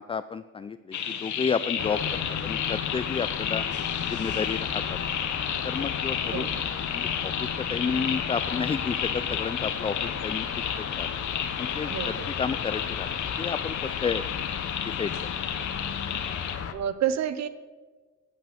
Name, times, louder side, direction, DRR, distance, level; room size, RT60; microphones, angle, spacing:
voice 1, 0.0-3.7 4.1-5.0 5.6-6.5 6.9-10.0 10.2-10.5 10.8-11.1 11.6-13.1 13.4-14.2 14.8-15.1, left 5 dB, 20° left, 12 dB, 0.3 m, -31 dB
sound 1, 0.9-16.6, left 8 dB, 75° left, 1.4 m, -32 dB
sound 2, 1.8-16.7, left 8 dB, 50° left, 0.9 m, -34 dB
voice 2, 6.3-6.7 11.9-12.3 16.7-17.5, right 9 dB, 65° right, 13 dB, 0.9 m, -29 dB
9.2 x 7.9 x 7.2 m, 1.4 s
cardioid pair, 90°, 30 cm